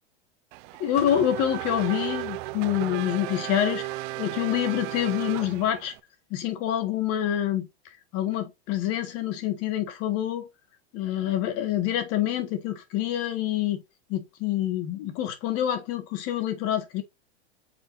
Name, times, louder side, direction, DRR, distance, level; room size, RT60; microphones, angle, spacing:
Race car auto racing / Accelerating revving vroom, 0.5-6.0, right 18 dB, 50° right, 0.6 m, -34 dB
voice 1, 0.8-3.9 4.2-5.9 6.3-7.7 8.1-10.5 10.9-13.8 14.1-17.0, left 11 dB, 45° left, 1.8 m, -27 dB
7.6 x 4.6 x 2.7 m
hypercardioid pair, 110°, 33 cm